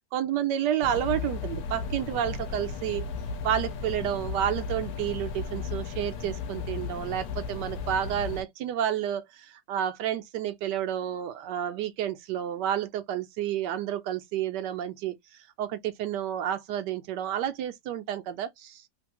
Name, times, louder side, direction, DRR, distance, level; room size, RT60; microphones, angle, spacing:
voice 1, 0.1-3.1 3.4-15.1 15.6-18.9, right 10 dB, 85° right, 1.2 m, -30 dB
sound 1, 0.8-8.4, left 5 dB, 70° left, 1.1 m, -35 dB
3.2 x 2.6 x 2.8 m
omnidirectional pair, 1.8 m